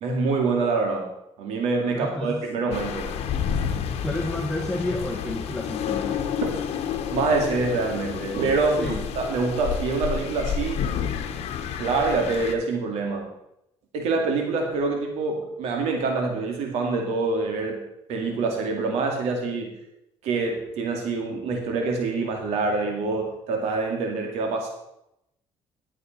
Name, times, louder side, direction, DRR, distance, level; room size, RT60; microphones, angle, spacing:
voice 1, 0.0-1.1 1.4-3.1 3.5-3.6 6.4-6.6 7.1-10.8 11.8-13.3 13.9-17.8 18.1-19.8 20.2-24.7, right 3 dB, 80° right, 2 dB, 2.3 m, -26 dB
voice 2, 1.9-2.4 3.9-6.2 8.8-9.0, left 1 dB, 5° left, 0 dB, 1.6 m, -30 dB
sound 1, 2.7-12.6, left 8 dB, 70° left, 1.2 m, -30 dB
12.0 x 7.9 x 4.5 m, 0.83 s
cardioid pair, 90°, 11 cm